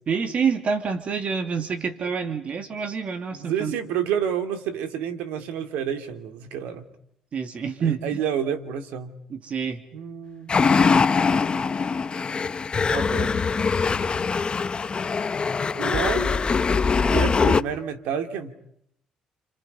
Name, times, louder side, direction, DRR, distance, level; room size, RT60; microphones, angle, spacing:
voice 1, 0.1-3.7 7.3-8.2 9.3-9.8, right 6 dB, 55° right, 7 dB, 2.7 m, -27 dB
voice 2, 3.3-6.9 7.8-9.1 9.9-10.5 12.9-13.4 15.7-16.4 17.1-18.5, right 8 dB, 80° right, 8 dB, 2.5 m, -29 dB
sound 1, 10.5-17.6, left 5 dB, 40° left, 1.0 m, -22 dB
30.0 x 26.5 x 5.6 m, 0.72 s
supercardioid pair, 60°, 3 cm